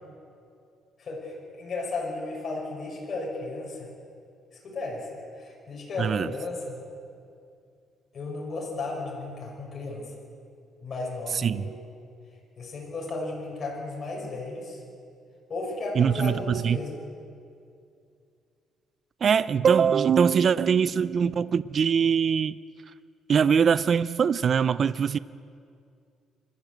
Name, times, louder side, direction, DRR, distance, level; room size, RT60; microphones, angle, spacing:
voice 1, 1.0-3.9 4.6-5.1 5.4-6.8 8.1-10.1 10.8-11.7 12.6-14.8 15.5-17.0, left 2 dB, 40° left, -2 dB, 5.9 m, -34 dB
voice 2, 6.0-6.3 11.3-11.7 16.0-16.8 19.2-22.5 23.3-25.2, right 7 dB, 45° right, 16 dB, 0.4 m, -22 dB
25.5 x 13.5 x 7.9 m, 2.4 s
cardioid pair, 120°, 0 cm